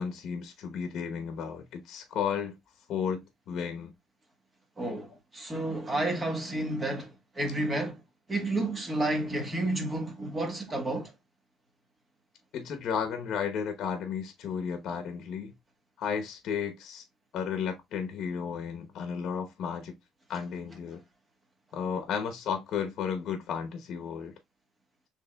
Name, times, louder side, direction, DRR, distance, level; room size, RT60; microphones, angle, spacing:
voice 1, 0.0-2.6 2.9-3.9 12.5-15.5 16.0-17.0 17.3-19.9 20.3-21.0 21.7-24.3, left 7 dB, 60° left, 0.9 m, -33 dB
voice 2, 4.8-8.0 8.3-11.1, right 2 dB, 20° right, 1.3 m, -31 dB
6.4 x 3.2 x 2.2 m
cardioid pair, 120°, 0 cm